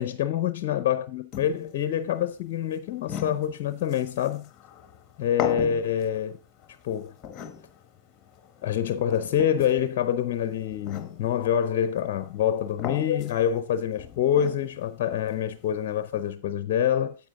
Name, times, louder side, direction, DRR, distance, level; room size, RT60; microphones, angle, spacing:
voice 1, 0.0-4.5 5.2-6.4 6.8-7.1 8.6-17.2, left 9 dB, 50° left, 0.6 m, -26 dB
sound 1, 1.3-16.3, left 8 dB, 30° left, 1.3 m, -40 dB
8.7 x 8.3 x 3.7 m
hypercardioid pair, 120°, 0 cm